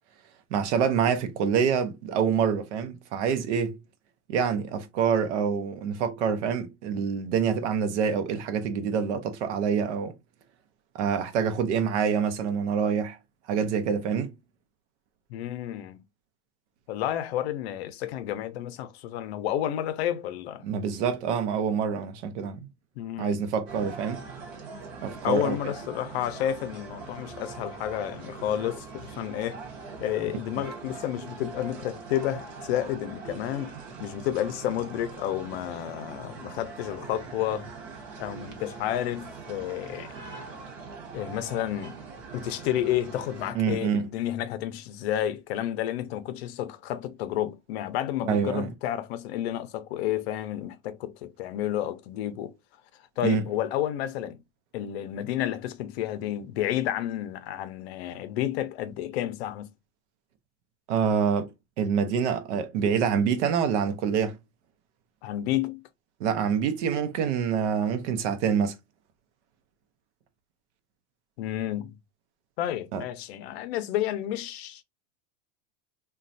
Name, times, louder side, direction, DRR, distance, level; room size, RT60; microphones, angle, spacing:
voice 1, 0.5-3.8 4.3-10.1 10.9-13.2 13.5-14.3 20.6-22.7 23.2-24.2 25.0-25.6 43.5-44.1 48.3-48.7 53.2-53.4 60.9-61.5 61.8-64.4 66.2-68.8 72.9-73.0, right 7 dB, 75° right, 0.7 m, -26 dB
voice 2, 15.3-16.0 16.9-20.7 23.0-23.5 25.2-29.6 30.0-37.7 38.2-40.1 41.1-42.0 42.3-52.6 53.2-54.4 54.7-59.7 65.2-65.8 71.4-72.0 72.6-74.8, left 12 dB, 60° left, 0.6 m, -31 dB
sound 1, 23.7-43.5, right 4 dB, 35° right, 0.8 m, -42 dB
3.0 x 2.3 x 2.6 m
supercardioid pair, 160°, 35 cm